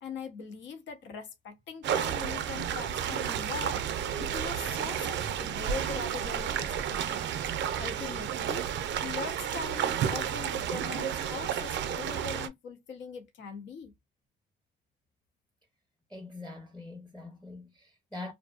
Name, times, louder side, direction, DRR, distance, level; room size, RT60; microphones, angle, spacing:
voice 1, 0.0-3.8 4.2-7.2 7.8-8.7 9.0-13.9, left 5 dB, 70° left, 0.8 m, -41 dB
sound 1, 1.8-12.5, right 9 dB, 65° right, 0.4 m, -32 dB
voice 2, 16.1-18.3, left 2 dB, 5° left, 0.6 m, -43 dB
2.6 x 2.0 x 2.3 m
cardioid pair, 90°, 20 cm